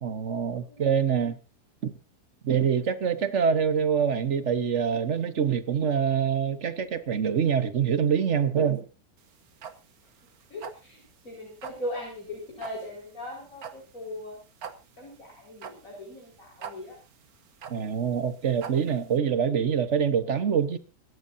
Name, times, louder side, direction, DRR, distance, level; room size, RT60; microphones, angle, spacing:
voice 1, 0.0-1.4 1.8-1.9 2.4-8.9 17.7-20.8, right 7 dB, 50° right, 1.4 m, -25 dB
sound 1, 9.2-19.1, right 7 dB, 65° right, 1.7 m, -44 dB
voice 2, 10.5-14.4 15.0-17.0, left 1 dB, 50° left, 5.6 m, -39 dB
25.5 x 13.0 x 2.7 m
omnidirectional pair, 1.7 m